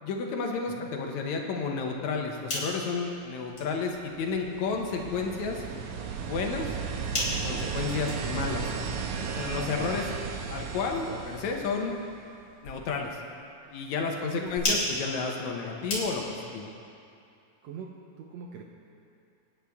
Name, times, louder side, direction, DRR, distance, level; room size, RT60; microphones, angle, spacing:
voice 1, 0.0-5.6 6.2-6.8 7.4-8.7 9.3-10.1 10.5-11.9 12.6-13.2 13.7-16.7, left 4 dB, 75° left, 1 dB, 2.3 m, -31 dB
sound 1, 2.3-16.5, left 1 dB, 45° left, 4.4 m, -38 dB
sound 2, 3.9-12.4 14.6-14.7, right 6 dB, 85° right, 2.4 m, -35 dB
voice 2, 9.7-10.2 13.6-14.8 17.6-18.6, right 6 dB, 70° right, 0 dB, 2.0 m, -44 dB
26.0 x 10.0 x 3.5 m, 2.6 s
omnidirectional pair, 3.3 m